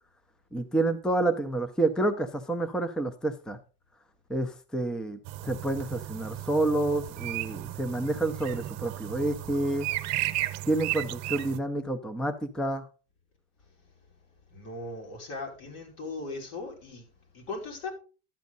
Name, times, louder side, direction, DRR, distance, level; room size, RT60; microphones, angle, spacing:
voice 1, 0.5-3.6 4.3-9.9 10.7-12.9, right 2 dB, ahead, 0.6 m, -29 dB
sound 1, 5.2-11.6, right 16 dB, 55° right, 1.0 m, -34 dB
voice 2, 14.5-17.9, left 3 dB, 75° left, 5.2 m, -39 dB
12.0 x 8.4 x 4.0 m
cardioid pair, 160°, 32 cm